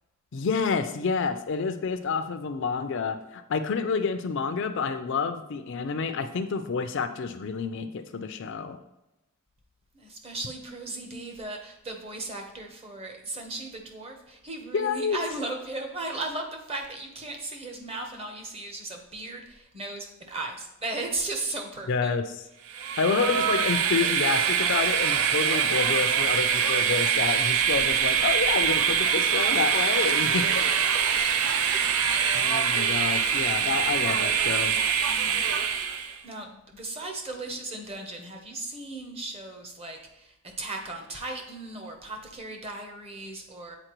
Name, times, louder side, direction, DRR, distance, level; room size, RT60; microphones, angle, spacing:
voice 1, 0.3-8.8 14.7-15.2 21.9-22.2 23.0-30.8 32.3-34.7, left 5 dB, 55° left, 8 dB, 0.4 m, -28 dB
voice 2, 9.9-22.2 30.9-31.3 35.1-35.5 36.2-43.8, right 2 dB, 25° right, 3 dB, 0.8 m, -36 dB
Train, 22.7-36.2, right 7 dB, 70° right, 0.4 m, -24 dB
7.8 x 4.3 x 3.0 m, 0.92 s
head